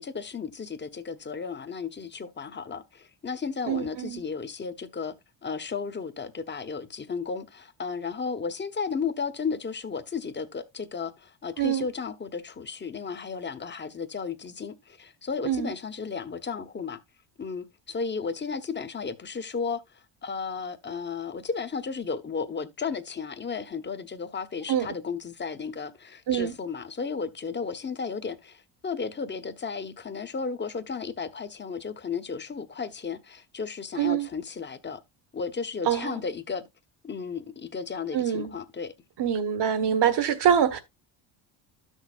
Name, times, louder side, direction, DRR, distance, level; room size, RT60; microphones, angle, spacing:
voice 1, 0.0-5.1 5.4-17.0 17.4-35.0 35.3-36.6 37.0-38.9, left 5 dB, 25° left, 1.0 m, -34 dB
voice 2, 3.7-4.2 11.6-11.8 15.4-15.7 24.7-24.9 26.3-26.5 34.0-34.3 35.9-36.2 38.1-38.5 39.2-40.8, right 9 dB, 60° right, 1.4 m, -24 dB
12.0 x 6.4 x 2.4 m
cardioid pair, 95°, 47 cm